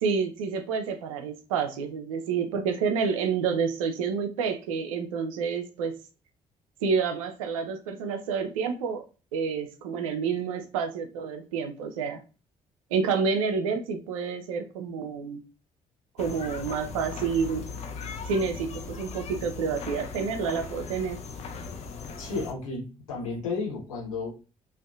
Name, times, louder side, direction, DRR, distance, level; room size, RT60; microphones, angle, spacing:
voice 1, 0.0-6.0 6.8-9.0 9.3-12.2 12.9-15.4 16.2-17.7 18.3-21.2, right 5 dB, 70° right, 6 dB, 0.4 m, -29 dB
sound 1, 16.2-22.5, left 5 dB, 40° left, 0.4 m, -38 dB
voice 2, 22.2-24.3, left 3 dB, 80° left, -4 dB, 0.9 m, -33 dB
2.6 x 2.1 x 2.3 m, 0.33 s
figure-of-eight pair, 45°, 18 cm